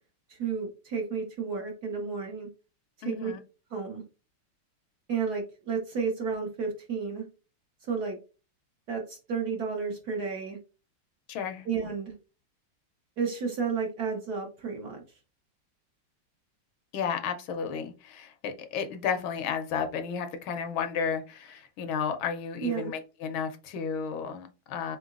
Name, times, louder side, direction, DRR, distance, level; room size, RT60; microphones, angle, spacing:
voice 1, 0.3-2.5 3.0-3.3 3.7-4.0 5.1-7.3 7.8-8.2 8.9-10.6 11.6-12.1 13.2-15.0 22.6-22.9, right 5 dB, 60° right, 1 dB, 1.1 m, -32 dB
voice 2, 3.0-3.4 11.3-11.7 16.9-25.0, left 6 dB, 75° left, 7 dB, 1.3 m, -32 dB
4.1 x 3.8 x 2.4 m, 0.33 s
omnidirectional pair, 2.4 m